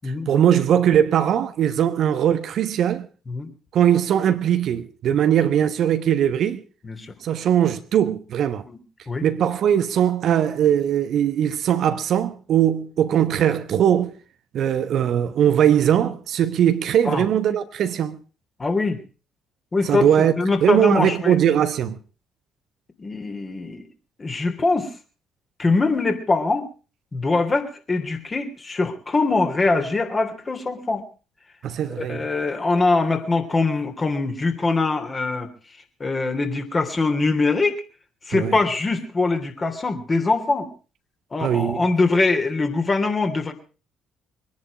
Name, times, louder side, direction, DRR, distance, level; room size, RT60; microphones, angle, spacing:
voice 1, 0.0-3.1 3.7-6.6 7.2-8.6 9.2-14.1 14.5-18.2 19.8-20.3 20.6-22.0 31.6-32.3 38.3-38.6 41.4-41.9, right 9 dB, 55° right, 1.0 m, -20 dB
voice 2, 6.8-7.1 8.7-8.8 9.1-9.2 17.0-17.2 18.6-19.0 19.7-20.1 20.4-21.4 23.0-23.8 24.2-24.9 25.6-26.6 27.1-31.0 32.0-35.5 36.0-37.8 38.3-40.7 41.3-43.5, left 3 dB, 30° left, 3.3 m, -23 dB
23.0 x 10.5 x 5.0 m
figure-of-eight pair, 45°, 0 cm